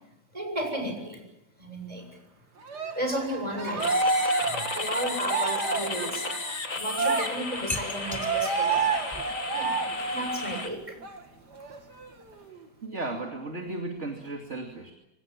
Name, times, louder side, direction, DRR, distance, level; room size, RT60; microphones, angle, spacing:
voice 1, 0.3-1.2 1.6-2.0 3.0-4.0 4.4-8.9 9.5-9.8 10.1-10.8, right 1 dB, 20° right, 4 dB, 7.7 m, -33 dB
Cheering, 2.7-10.6 11.0-11.2 11.6-12.6, right 4 dB, 70° right, 3.1 m, -29 dB
sound 1, 3.8-10.7, left 4 dB, 50° left, 2.6 m, -34 dB
sound 2, 7.5-12.5, left 2 dB, 10° left, 1.7 m, -43 dB
voice 2, 12.8-14.9, right 2 dB, 40° right, 3 dB, 3.0 m, -35 dB
27.5 x 25.0 x 7.4 m, 0.92 s
omnidirectional pair, 1.8 m